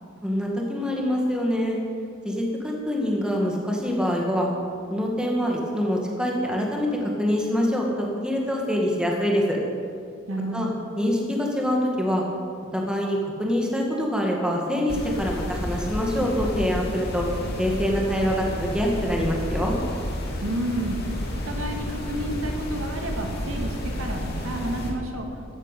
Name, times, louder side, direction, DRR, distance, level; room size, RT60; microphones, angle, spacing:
voice 1, 0.2-1.8 2.2-4.5 4.9-9.6 10.5-10.7 11.0-12.2 12.7-17.3 17.6-19.8, equal, 5° right, -1 dB, 2.1 m, -25 dB
voice 2, 10.3-10.7 20.4-21.0 21.4-25.5, right 1 dB, 90° right, 2 dB, 2.0 m, -31 dB
sound 1, 14.9-24.9, equal, 50° left, 2.7 m, -31 dB
13.5 x 9.6 x 8.4 m, 2.3 s
head